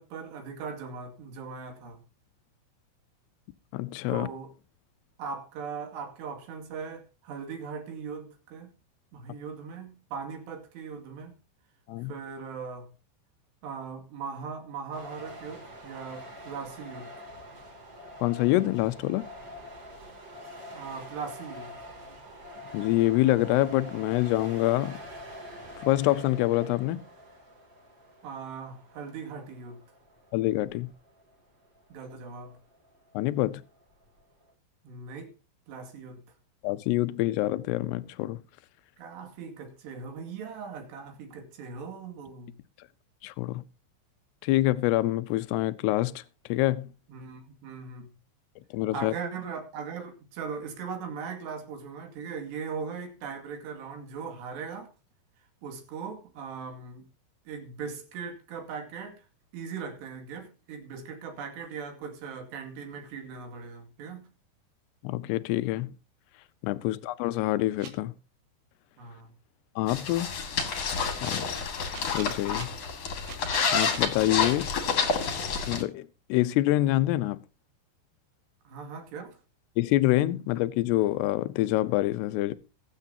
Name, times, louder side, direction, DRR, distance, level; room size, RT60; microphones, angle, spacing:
voice 1, 0.0-2.0 4.1-4.5 5.2-8.7 9.1-11.4 12.0-12.9 13.6-17.1 20.7-21.8 28.2-29.8 31.9-32.6 34.8-35.3 35.7-36.2 39.0-42.6 47.1-48.1 48.9-54.9 55.6-57.1 57.5-59.3 59.5-64.3 66.8-67.0 69.0-69.3 78.7-79.4, right 5 dB, 65° right, 4.2 m, -39 dB
voice 2, 3.7-4.3 11.9-12.1 18.2-19.3 22.7-25.0 25.8-27.0 30.3-30.9 33.1-33.6 36.6-38.4 43.2-43.6 44.4-46.2 46.5-46.9 48.7-49.1 65.0-65.9 66.6-68.1 69.8-70.3 71.2-71.4 72.1-72.7 73.7-74.7 75.7-77.4 79.8-82.5, left 16 dB, 80° left, 2.5 m, -26 dB
sound 1, 14.9-34.5, equal, 30° right, 2.8 m, -46 dB
sound 2, 67.8-67.9 70.6-71.3 71.9-72.6 73.2-74.0, right 7 dB, 90° right, 5.0 m, -43 dB
sound 3, 69.9-75.8, left 5 dB, 50° left, 2.2 m, -29 dB
22.5 x 8.3 x 2.8 m
omnidirectional pair, 5.4 m